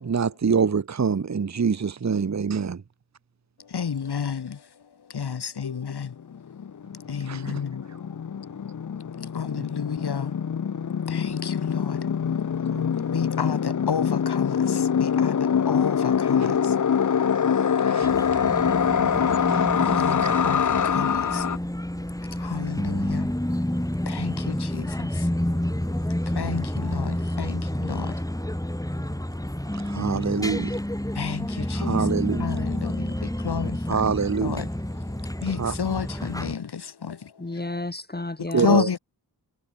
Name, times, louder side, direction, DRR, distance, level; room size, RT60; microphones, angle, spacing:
voice 1, 0.0-2.8 7.3-7.6 9.5-9.7 12.7-12.9 17.8-18.1 19.5-19.6 20.2-20.6 29.8-30.8 31.7-32.6 33.9-34.6 35.6-35.8 38.5-38.9, right 5 dB, 40° right, 1.0 m, -25 dB
voice 2, 3.7-4.6 5.1-6.1 7.1-7.8 9.3-10.4 11.1-12.0 13.1-16.8 19.8-21.5 22.4-23.3 24.1-25.3 26.3-28.2 31.2-32.1 32.4-34.1 34.4-34.7 35.4-37.3 38.6-39.0, left 7 dB, 70° left, 1.8 m, -31 dB
sound 1, 6.0-6.1 6.3-21.6, left 7 dB, 50° left, 0.8 m, -24 dB
sound 2, 18.0-36.5, left 1 dB, 10° left, 6.0 m, -29 dB
voice 3, 37.4-38.9, left 2 dB, 25° left, 2.1 m, -32 dB
cardioid pair, 45°, 40 cm